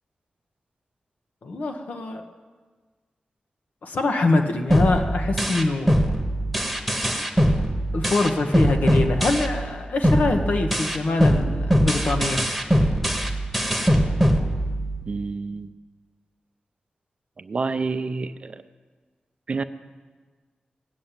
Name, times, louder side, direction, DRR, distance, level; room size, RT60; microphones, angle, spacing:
voice 1, 1.4-2.2 3.8-6.0 7.9-12.4, left 2 dB, 70° left, 4 dB, 1.0 m, -24 dB
sound 1, 4.7-9.7 10.0-15.1, equal, 5° left, 1.2 m, -22 dB
voice 2, 15.1-15.7 17.4-18.6 19.5-19.6, right 4 dB, 45° right, 11 dB, 0.6 m, -28 dB
16.5 x 6.9 x 8.8 m, 1.4 s
wide cardioid pair, 160°, 3 cm